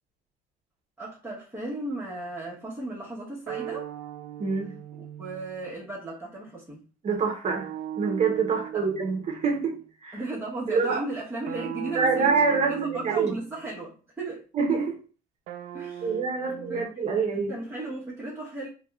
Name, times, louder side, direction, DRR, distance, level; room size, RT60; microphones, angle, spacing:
voice 1, 1.0-3.9 5.2-6.8 8.7-8.9 10.1-14.4 15.7-16.2 16.4-16.9 17.5-18.7, right 2 dB, 10° right, 1.1 m, -35 dB
sound 1, 3.5-5.8 7.5-9.8 11.5-13.7 15.5-16.9, right 11 dB, 85° right, 0.4 m, -38 dB
voice 2, 4.4-4.8 7.0-10.2 10.7-11.0 11.9-13.4 14.5-15.0 16.0-17.5, right 5 dB, 40° right, 0.8 m, -26 dB
3.3 x 3.1 x 2.3 m
cardioid pair, 110°, 17 cm